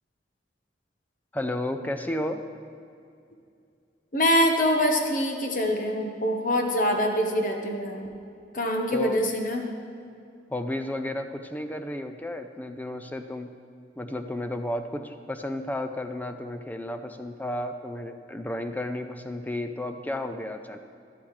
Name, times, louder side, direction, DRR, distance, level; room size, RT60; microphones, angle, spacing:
voice 1, 1.3-2.4 8.9-9.2 10.5-13.5 14.0-20.8, left 1 dB, 10° left, 7 dB, 0.4 m, -32 dB
voice 2, 4.1-8.1 8.5-9.6, equal, 50° left, 2 dB, 1.1 m, -24 dB
12.5 x 11.5 x 3.2 m, 2.5 s
head